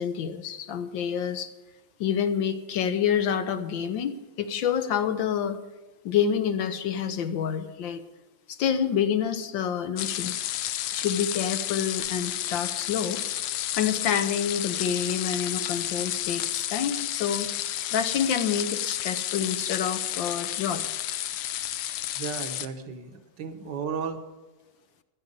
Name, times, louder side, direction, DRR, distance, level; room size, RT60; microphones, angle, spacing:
voice 1, 0.0-1.5 2.0-5.6 6.0-8.0 8.5-10.3 10.9-13.2 13.8-17.5 17.9-20.8, left 8 dB, 70° left, 10 dB, 1.5 m, -28 dB
sound 1, 10.0-22.7, left 13 dB, 90° left, 1.5 m, -31 dB
voice 2, 22.1-24.2, right 6 dB, 60° right, 7 dB, 1.8 m, -34 dB
15.0 x 10.5 x 5.4 m, 1.1 s
omnidirectional pair, 2.2 m